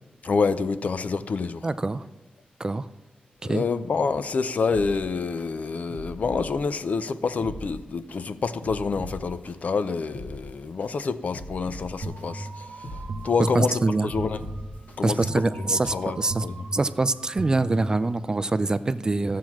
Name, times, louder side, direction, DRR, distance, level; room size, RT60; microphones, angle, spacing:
voice 1, 0.2-1.7 3.4-14.5 15.0-15.3 15.7-16.7, left 4 dB, 60° left, 0.5 m, -27 dB
voice 2, 1.6-2.1 2.6-2.9 3.4-3.6 13.5-14.1 15.0-16.4 16.7-19.4, right 2 dB, 25° right, 0.4 m, -24 dB
sound 1, 4.7-5.5 5.9-6.8 7.3-8.2 8.6-9.5 10.0-10.9 11.3-12.2 12.7-13.6 14.0-15.0 15.4-15.5, equal, 85° left, 2.1 m, -40 dB
sound 2, 12.0-18.4, right 2 dB, 60° right, 1.0 m, -38 dB
13.5 x 7.5 x 6.0 m
wide cardioid pair, 130°, 3 cm